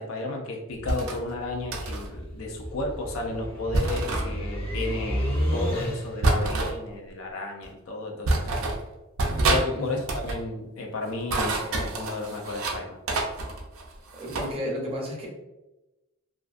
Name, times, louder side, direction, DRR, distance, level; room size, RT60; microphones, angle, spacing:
voice 1, 0.0-8.5 9.4-13.0, left 2 dB, 75° left, 1 dB, 0.4 m, -33 dB
sound 1, 0.7-6.4, equal, 25° left, 0.7 m, -32 dB
sound 2, 0.9-1.2 1.7-2.1 3.7-4.3 6.2-6.7 7.6-7.7 8.2-8.8 9.2-9.7 10.0-10.4 11.1-12.8 13.1-14.5, right 2 dB, 80° right, 0.5 m, -27 dB
voice 2, 14.1-15.3, equal, 30° right, -2 dB, 0.6 m, -33 dB
2.5 x 2.4 x 2.3 m, 1.0 s
head